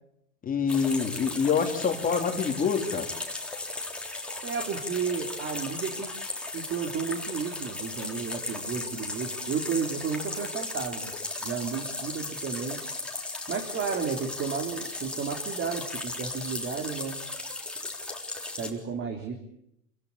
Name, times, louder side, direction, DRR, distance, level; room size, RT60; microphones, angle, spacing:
voice 1, 0.4-3.1, left 6 dB, 20° left, 4 dB, 3.3 m, -26 dB
sound 1, 0.7-18.7, left 2 dB, ahead, 3.7 m, -36 dB
voice 2, 4.4-6.1 6.5-11.1 11.4-12.8 13.5-17.2 18.6-19.4, right 6 dB, 30° right, 3 dB, 3.6 m, -32 dB
28.0 x 16.5 x 10.0 m, 0.77 s
hypercardioid pair, 125°, 40 cm